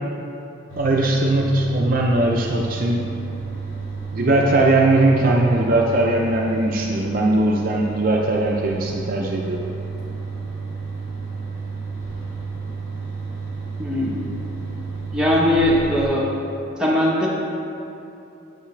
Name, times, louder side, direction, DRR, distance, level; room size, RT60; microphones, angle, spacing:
sound 1, 0.7-16.1, right 4 dB, 85° left, 1.2 m, -31 dB
voice 1, 0.8-3.0 4.1-9.6, right 2 dB, 45° right, -1 dB, 0.5 m, -19 dB
voice 2, 13.8-14.2 15.1-16.3 16.8-17.3, left 1 dB, 5° right, -6 dB, 1.0 m, -19 dB
8.9 x 5.7 x 3.2 m, 2.8 s
head